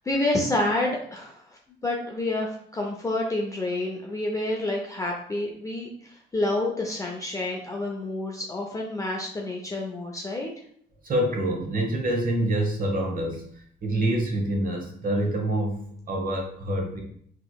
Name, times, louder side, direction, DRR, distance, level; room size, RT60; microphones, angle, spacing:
voice 1, 0.0-10.5, left 2 dB, 15° left, -1 dB, 0.5 m, -29 dB
voice 2, 11.0-15.8 16.1-17.0, right 1 dB, 45° right, 1 dB, 1.0 m, -26 dB
3.8 x 3.0 x 2.3 m, 0.64 s
cardioid pair, 90°, 20 cm